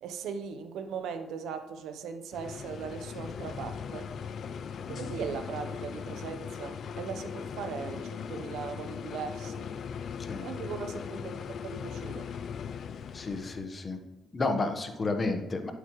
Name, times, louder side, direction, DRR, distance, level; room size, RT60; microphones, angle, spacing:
voice 1, 0.0-4.1 4.9-9.7 10.4-11.3 11.6-12.3, right 6 dB, 80° right, 8 dB, 0.8 m, -39 dB
sound 1, 2.3-13.7, left 7 dB, 60° left, 0.4 m, -39 dB
voice 2, 13.1-14.0 14.3-15.7, left 3 dB, 35° left, 6 dB, 1.2 m, -31 dB
10.5 x 8.0 x 3.1 m, 0.97 s
cardioid pair, 90°, 0 cm